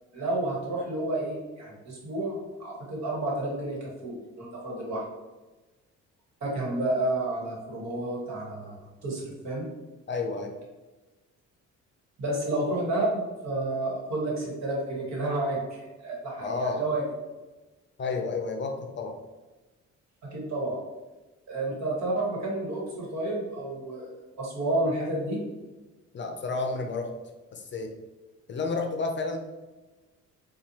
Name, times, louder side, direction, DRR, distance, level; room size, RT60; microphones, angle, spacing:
voice 1, 0.1-5.1 6.4-9.7 12.2-17.0 20.3-20.8 21.5-24.1 24.4-25.4, right 2 dB, 60° right, -3 dB, 1.5 m, -30 dB
voice 2, 10.1-10.5 16.4-16.8 18.0-19.1 26.1-27.1 27.5-27.9 28.5-29.4, left 3 dB, 40° left, 4 dB, 0.5 m, -30 dB
4.2 x 2.4 x 2.9 m, 1.2 s
cardioid pair, 90°, 30 cm